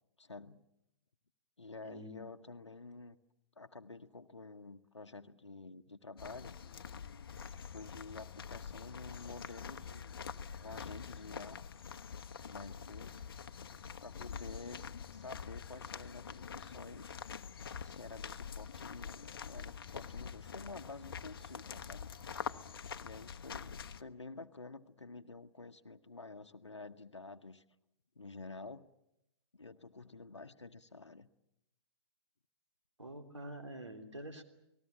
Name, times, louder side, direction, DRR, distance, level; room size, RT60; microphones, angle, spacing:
voice 1, 0.2-0.6 1.6-3.2 3.6-6.5 7.5-10.2 10.5-11.6 12.4-13.2 14.0-14.8 15.1-17.1 17.7-22.1 22.9-27.6 28.2-28.9 29.5-31.3, left 3 dB, 80° left, 6 dB, 1.0 m, -50 dB
voice 2, 1.8-2.5 33.0-34.4, right 1 dB, 80° right, 3 dB, 3.2 m, -47 dB
sound 1, 6.2-24.0, left 7 dB, 55° left, 1.0 m, -46 dB
29.5 x 19.0 x 7.3 m, 0.84 s
figure-of-eight pair, 125°, 15 cm